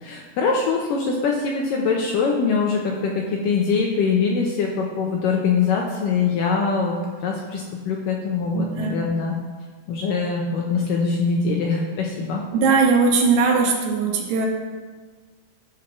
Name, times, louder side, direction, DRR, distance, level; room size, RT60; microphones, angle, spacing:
voice 1, 0.0-9.4 9.9-12.4, left 5 dB, 75° left, 0 dB, 2.1 m, -23 dB
voice 2, 8.5-9.0 12.5-14.5, right 4 dB, 90° right, 1 dB, 3.5 m, -19 dB
12.0 x 4.6 x 6.1 m, 1.4 s
omnidirectional pair, 4.7 m